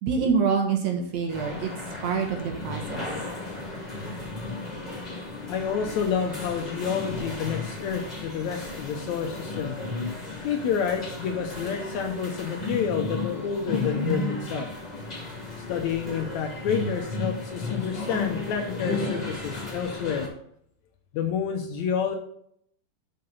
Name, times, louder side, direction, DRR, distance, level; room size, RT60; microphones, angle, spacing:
voice 1, 0.0-1.7 2.0-3.1, right 5 dB, 65° right, 2 dB, 2.2 m, -26 dB
sound 1, 1.3-20.3, left 3 dB, 15° left, 2.1 m, -34 dB
voice 2, 5.5-9.8 10.4-14.7 15.7-20.3 21.1-22.2, left 7 dB, 75° left, 4 dB, 1.8 m, -29 dB
6.6 x 5.8 x 5.3 m, 0.69 s
omnidirectional pair, 3.8 m